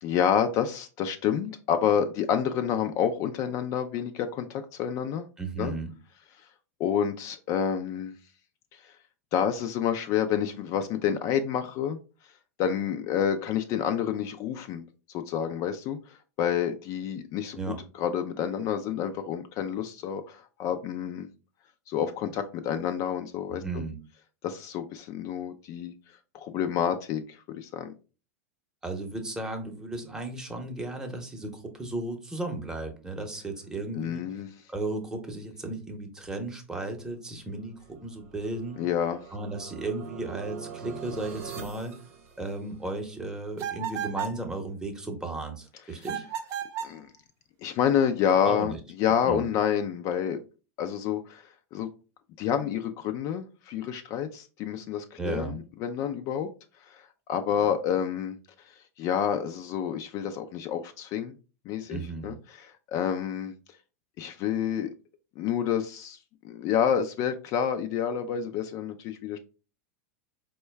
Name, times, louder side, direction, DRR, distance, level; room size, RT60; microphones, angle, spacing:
voice 1, 0.0-5.3 5.6-5.7 6.8-8.1 8.8-8.9 9.3-12.0 12.6-21.3 21.9-23.6 24.4-25.9 26.3-27.9 34.0-34.6 38.8-39.2 46.8-47.1 47.6-50.4 50.8-51.9 52.4-56.5 56.9-58.4 59.0-61.3 61.7-63.5 64.2-64.9 65.4-66.2 66.4-69.4, left 8 dB, 45° left, 7 dB, 0.4 m, -29 dB
voice 2, 5.4-5.9 17.5-17.8 23.5-24.0 28.8-34.2 34.7-38.8 39.3-41.9 42.4-46.2 48.4-48.8 49.2-49.4 55.2-55.5 61.9-62.4, right 2 dB, 10° right, 3 dB, 0.9 m, -35 dB
sound 1, 37.8-43.0, right 7 dB, 70° right, 0.8 m, -44 dB
sound 2, 43.6-44.4 46.0-47.0, right 8 dB, 40° right, 0.6 m, -33 dB
4.4 x 2.2 x 3.2 m, 0.34 s
hypercardioid pair, 105°, 8 cm